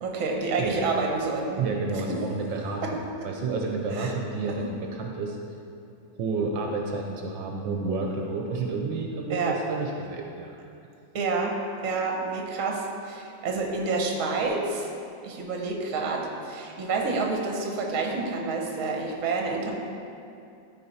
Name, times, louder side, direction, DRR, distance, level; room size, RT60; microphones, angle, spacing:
voice 1, 0.0-1.6 2.8-2.9 3.9-4.1 4.5-4.7 9.3-9.6 11.1-11.5 11.8-14.9 15.2-19.8, right 3 dB, 50° right, 0 dB, 1.3 m, -28 dB
voice 2, 1.6-5.4 6.2-10.6, right 3 dB, 75° right, 1 dB, 1.4 m, -30 dB
12.5 x 4.6 x 4.2 m, 2.6 s
omnidirectional pair, 2.1 m